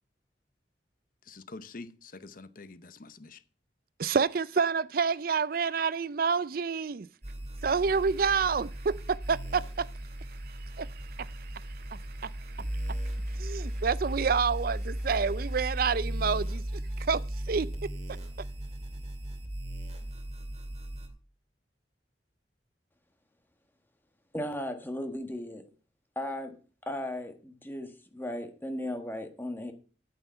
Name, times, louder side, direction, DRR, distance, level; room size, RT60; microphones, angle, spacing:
voice 1, 1.2-3.4, left 3 dB, 50° left, 0.7 m, -46 dB
voice 2, 4.0-7.1 7.6-9.9 10.5-13.0 13.3-17.9, right 5 dB, 55° right, 0.5 m, -29 dB
sound 1, 7.2-21.1, right 1 dB, 35° right, 2.3 m, -36 dB
voice 3, 24.3-25.6 26.1-26.6 26.9-29.7, left 1 dB, 10° left, 1.4 m, -36 dB
9.4 x 8.8 x 5.6 m
head